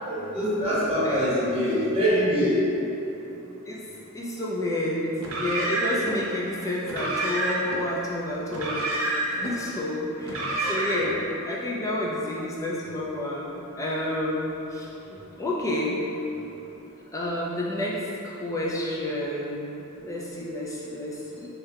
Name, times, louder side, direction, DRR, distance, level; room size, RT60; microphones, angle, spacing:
voice 1, 0.0-2.5, equal, 30° right, -11 dB, 0.9 m, -24 dB
voice 2, 4.1-5.1 5.4-14.9 15.4-16.0 17.1-21.5, left 1 dB, 15° left, -5 dB, 0.3 m, -30 dB
Car, 5.2-6.1 6.8-7.8 8.5-9.5 10.2-11.2, right 2 dB, 75° right, 0.5 m, -28 dB
3.4 x 2.2 x 3.3 m, 3.0 s
head